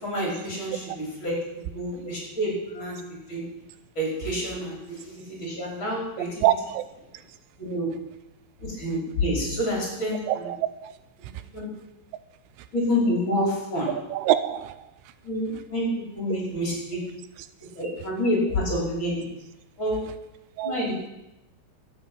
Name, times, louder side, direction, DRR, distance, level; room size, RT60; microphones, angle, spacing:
voice 1, 0.0-3.0 3.3-3.4 4.0-4.8 5.0-6.5 7.6-7.9 8.6-10.5 11.2-11.3 11.5-11.7 12.7-13.9 15.2-15.9 16.1-17.0 17.6-19.3 19.8-20.0 20.6-20.9, equal, 25° left, -3 dB, 5.4 m, -28 dB
voice 2, 6.4-6.8 10.3-10.6 10.8-10.9 14.1-14.7 20.6-20.8, right 13 dB, 85° right, 13 dB, 3.1 m, -24 dB
13.0 x 8.9 x 8.8 m, 0.92 s
omnidirectional pair, 5.6 m